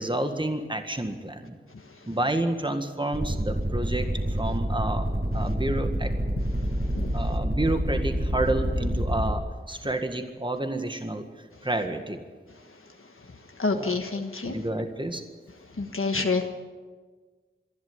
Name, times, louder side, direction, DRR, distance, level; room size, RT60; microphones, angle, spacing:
voice 1, 0.0-1.6 2.1-5.1 5.3-6.1 7.1-11.3 11.6-12.2 13.7-14.0 14.4-15.2, right 1 dB, 25° right, 6 dB, 1.8 m, -29 dB
sound 1, 3.1-9.3, right 1 dB, 45° right, 7.2 m, -28 dB
voice 2, 13.3-14.6 15.7-16.5, left 3 dB, 80° left, 4 dB, 1.5 m, -28 dB
26.5 x 11.5 x 9.6 m, 1.4 s
wide cardioid pair, 55°, 21 cm